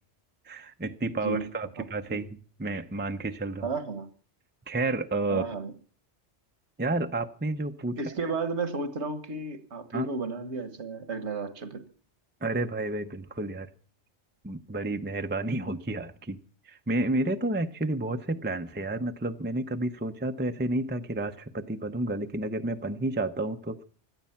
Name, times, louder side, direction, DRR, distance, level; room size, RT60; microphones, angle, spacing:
voice 1, 0.5-2.3 2.6-3.7 4.7-5.4 6.8-8.1 9.9-10.1 12.4-13.7 14.4-16.4 16.6-23.8, right 2 dB, 10° right, 7 dB, 0.5 m, -30 dB
voice 2, 1.8-2.2 3.6-4.1 5.3-5.7 7.9-11.8, right 4 dB, 75° right, 12 dB, 1.7 m, -33 dB
17.0 x 12.0 x 5.8 m, 0.42 s
omnidirectional pair, 1.2 m